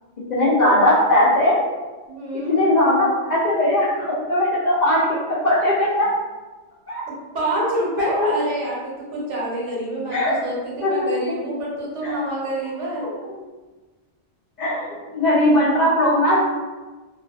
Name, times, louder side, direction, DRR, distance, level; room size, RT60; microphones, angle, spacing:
voice 1, 0.3-1.5 2.5-6.1 6.9-7.0 8.0-8.3 10.1-10.3 10.8-11.1 12.0-12.2 13.0-13.1 14.6-14.9 15.1-16.4, left 1 dB, 55° left, -8 dB, 0.5 m, -19 dB
voice 2, 2.1-2.6 7.3-13.1, right 1 dB, 75° right, -5 dB, 1.1 m, -27 dB
2.3 x 2.3 x 2.3 m, 1.2 s
omnidirectional pair, 1.2 m